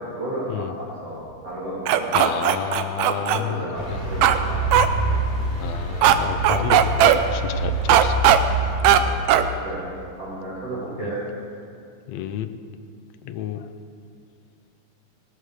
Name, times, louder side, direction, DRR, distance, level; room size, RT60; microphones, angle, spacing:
voice 1, 0.0-2.4 3.1-4.6 5.1-5.2 8.9-9.2 9.6-9.9 10.2-11.2, right 1 dB, 55° right, -9 dB, 3.5 m, -33 dB
sound 1, 1.9-3.4 4.2-4.4 4.7-4.9 6.0-6.2 6.4-7.2 7.9-8.4 8.8-9.0 9.3-9.5, right 11 dB, 75° right, 1.8 m, -16 dB
voice 2, 2.1-3.6 3.9-4.0 5.6-8.2 12.1-12.5 13.2-13.6, left 10 dB, 75° left, 10 dB, 1.7 m, -29 dB
sound 2, 3.7-8.9, right 2 dB, 20° right, 4.6 m, -26 dB
18.0 x 7.8 x 6.5 m, 2.3 s
omnidirectional pair, 3.5 m